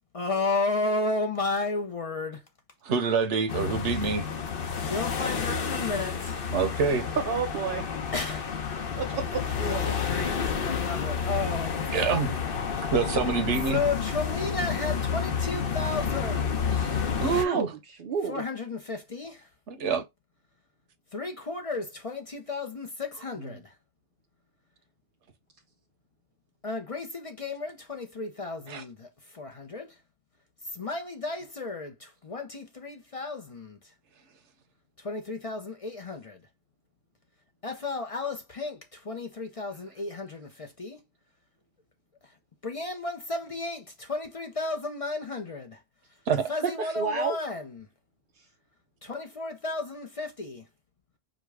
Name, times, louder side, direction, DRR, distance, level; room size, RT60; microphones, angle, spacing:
voice 1, 0.1-2.4 4.8-6.4 8.1-8.4 9.6-12.3 13.7-16.9 18.3-19.5 21.1-23.7 26.6-29.9 30.7-33.8 35.0-36.4 37.6-41.0 42.6-45.8 46.5-47.9 49.0-50.6, left 3 dB, 40° left, 0.6 m, -33 dB
voice 2, 2.8-4.2 6.5-7.1 11.9-12.3 12.9-13.8 16.8-16.9 17.2-17.7 19.7-20.0 23.4-23.5 28.7-28.8 46.3-46.4, right 5 dB, 90° right, 1.1 m, -26 dB
sound 1, 3.5-17.4, left 6 dB, 55° left, 0.9 m, -30 dB
voice 3, 7.3-7.8 9.0-9.9 17.3-17.7 18.0-18.4 46.9-47.4, right 5 dB, 55° right, 0.8 m, -30 dB
4.9 x 2.2 x 4.7 m
omnidirectional pair, 1.2 m